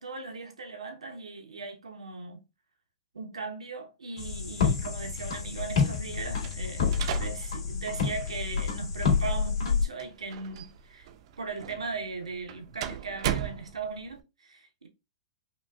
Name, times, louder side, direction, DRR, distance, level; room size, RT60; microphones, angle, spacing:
voice 1, 0.0-2.4 3.1-11.1 11.4-14.9, right 4 dB, 90° right, 1.0 m, -38 dB
sound 1, 4.2-9.8, left 5 dB, 65° left, 2.1 m, -28 dB
sound 2, 6.4-14.2, right 10 dB, 60° right, 0.6 m, -39 dB
5.2 x 2.5 x 2.3 m
hypercardioid pair, 115°, 3 cm